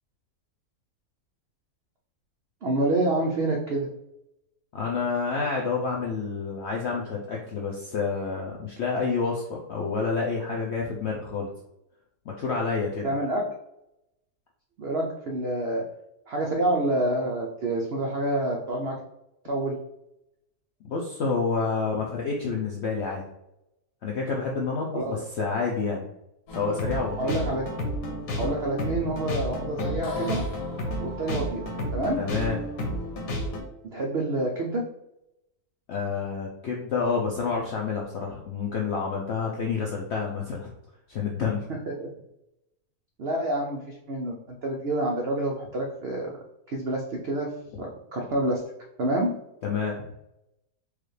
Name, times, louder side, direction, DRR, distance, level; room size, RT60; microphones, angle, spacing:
voice 1, 2.6-3.9 13.0-13.6 14.8-15.9 16.3-19.0 19.4-19.8 24.9-25.2 27.2-27.7 28.3-30.4 31.0-32.2 33.9-34.9 41.7-42.1 43.2-46.3 46.7-47.5 47.8-48.6 49.0-49.3, right 1 dB, 75° right, 0 dB, 0.5 m, -28 dB
voice 2, 4.7-11.5 12.3-13.1 20.8-23.2 24.0-26.1 26.5-27.3 32.2-32.6 35.9-40.7 41.1-41.6 49.6-50.0, left 4 dB, 70° left, -1 dB, 0.6 m, -28 dB
sound 1, 26.5-33.6, left 1 dB, 90° left, 1.5 m, -31 dB
4.7 x 2.4 x 3.2 m, 0.85 s
omnidirectional pair, 1.7 m